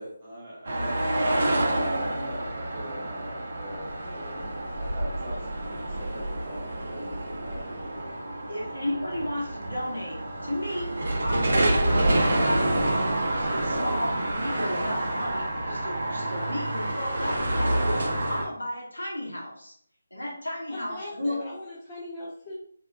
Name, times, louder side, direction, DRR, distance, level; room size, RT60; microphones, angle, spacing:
voice 1, 0.0-3.9 4.8-7.9, equal, 35° right, -5 dB, 1.2 m, -42 dB
sound 1, 0.7-18.5, right 1 dB, 55° right, 0.6 m, -28 dB
voice 2, 4.0-4.5 20.7-22.5, left 1 dB, 25° left, -7 dB, 0.5 m, -40 dB
voice 3, 8.5-19.7 20.1-21.5, left 1 dB, 90° left, -3 dB, 1.0 m, -34 dB
2.7 x 2.2 x 2.4 m, 0.64 s
figure-of-eight pair, 155°, 0 cm